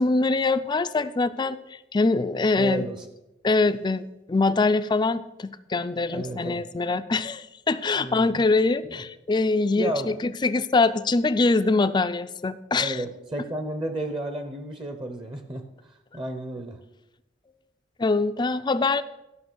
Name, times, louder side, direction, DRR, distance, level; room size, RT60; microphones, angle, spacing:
voice 1, 0.0-2.8 3.4-13.0 18.0-19.0, left 3 dB, 25° left, 13 dB, 0.4 m, -23 dB
voice 2, 2.6-3.0 6.1-6.6 8.0-8.4 8.9-9.0 9.8-10.2 12.8-16.8, right 1 dB, 30° right, 7 dB, 0.8 m, -32 dB
12.5 x 5.8 x 6.2 m, 0.92 s
head